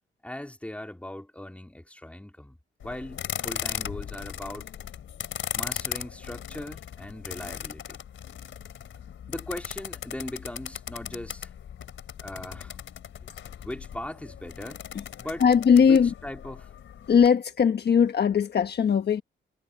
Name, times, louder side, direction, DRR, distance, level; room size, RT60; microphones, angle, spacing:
voice 1, 0.2-2.6 2.8-4.7 5.5-8.0 9.3-11.5 12.2-12.8 13.6-14.8 15.2-15.4 15.8-16.7, left 1 dB, 5° left, 3.7 m, -39 dB
sound 1, 2.8-17.3, left 9 dB, 75° left, 4.2 m, -38 dB
voice 2, 15.4-16.1 17.1-19.2, left 7 dB, 55° left, 1.3 m, -20 dB
cardioid pair, 110°, 20 cm